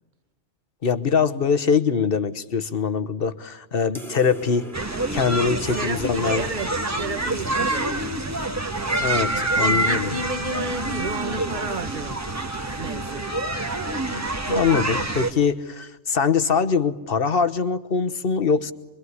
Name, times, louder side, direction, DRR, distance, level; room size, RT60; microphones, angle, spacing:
voice 1, 0.8-4.7 5.1-6.4 9.0-10.1 14.1-18.7, left 6 dB, 50° left, 1.4 m, -23 dB
sound 1, 3.9-8.8, right 3 dB, ahead, 2.3 m, -42 dB
sound 2, 4.7-15.3, right 2 dB, 15° right, 1.4 m, -26 dB
voice 2, 5.5-7.9 9.3-12.2 12.8-13.3, right 2 dB, 40° right, 1.5 m, -32 dB
Wind instrument woodwind instrument, 8.8-14.9, right 2 dB, 85° right, 2.2 m, -43 dB
25.5 x 23.5 x 9.7 m
omnidirectional pair, 1.3 m